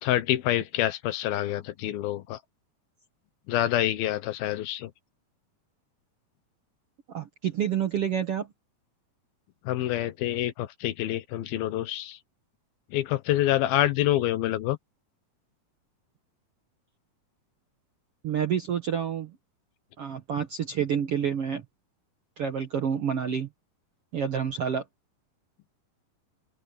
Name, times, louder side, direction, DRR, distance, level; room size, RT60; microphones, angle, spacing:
voice 1, 0.0-2.4 3.5-4.9 9.7-12.2 12.9-14.8, left 13 dB, 80° left, 2.9 m, -27 dB
voice 2, 7.1-8.5 18.2-19.3 20.0-21.6 22.4-23.5 24.1-24.8, right 8 dB, 65° right, 1.5 m, -28 dB
open air
omnidirectional pair, 4.3 m